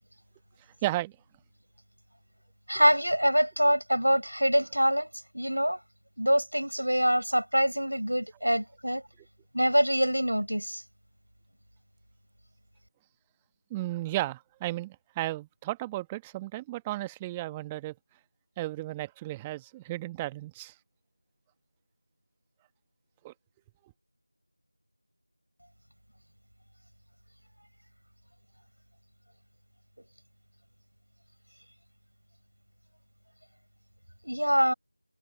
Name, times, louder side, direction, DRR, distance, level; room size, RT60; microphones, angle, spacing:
voice 1, 0.8-1.1 13.7-17.9 18.6-20.7 23.2-23.3, right 17 dB, 5° right, 1.4 m, -34 dB
voice 2, 2.7-5.1 5.3-5.8 6.2-9.0 9.5-10.8 34.2-34.7, equal, 80° right, 6.5 m, -25 dB
figure-of-eight pair, 170°, 0 cm